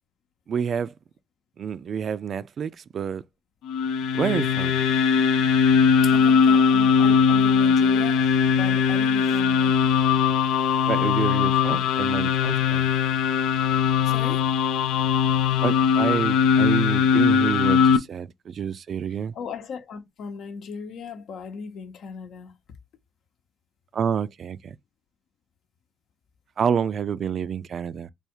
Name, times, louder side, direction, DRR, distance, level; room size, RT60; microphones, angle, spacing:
voice 1, 0.5-0.9 1.6-3.2 4.1-4.8 10.9-12.9 15.6-19.3 23.9-24.8 26.6-28.1, right 7 dB, 55° right, 0.4 m, -28 dB
sound 1, 3.7-18.0, left 6 dB, 90° left, 0.4 m, -20 dB
voice 2, 6.0-9.8 14.0-14.5 19.3-22.5, left 6 dB, 75° left, 0.8 m, -37 dB
3.4 x 2.3 x 4.4 m
cardioid pair, 90°, 0 cm